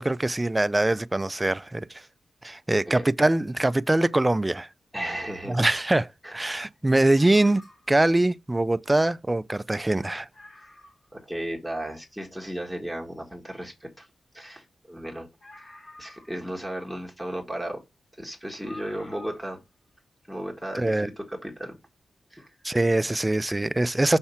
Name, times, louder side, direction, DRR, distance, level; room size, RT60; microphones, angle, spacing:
voice 1, 0.0-2.0 2.4-4.7 5.5-10.3 20.8-21.1 22.6-24.2, right 2 dB, 15° right, 0.3 m, -23 dB
voice 2, 4.9-5.6 6.2-6.3 11.1-14.1 14.3-15.3 15.6-15.7 16.0-17.8 18.2-19.6 20.3-21.8 22.3-22.5, right 1 dB, 5° left, 1.5 m, -35 dB
sound 1, 7.1-8.0 9.1-9.2 9.6-9.7 10.0-10.1 10.3-11.1 11.7-11.8 15.4-16.7 17.8-17.9 18.6-19.6 19.9-20.0, left 1 dB, 50° left, 2.7 m, -48 dB
5.7 x 4.3 x 5.6 m
wide cardioid pair, 120°, 0 cm